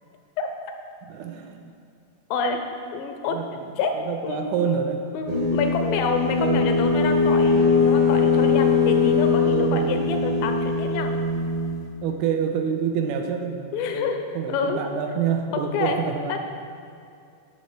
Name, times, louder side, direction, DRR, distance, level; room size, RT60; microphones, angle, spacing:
voice 1, 1.1-1.7 3.3-3.4 4.1-5.0 6.4-6.6 9.5-10.1 12.0-14.1 14.4-16.4, right 7 dB, 80° right, 5 dB, 1.9 m, -27 dB
voice 2, 2.3-2.6 2.9-3.4 3.8-3.9 4.2-4.6 5.1-11.1 13.7-14.8 15.5-16.0 16.3-16.4, left 5 dB, 85° left, 5 dB, 2.5 m, -27 dB
sound 1, 5.3-11.8, left 4 dB, 55° right, 1.6 m, -21 dB
11.5 x 4.3 x 6.7 m, 2.4 s
omnidirectional pair, 4.0 m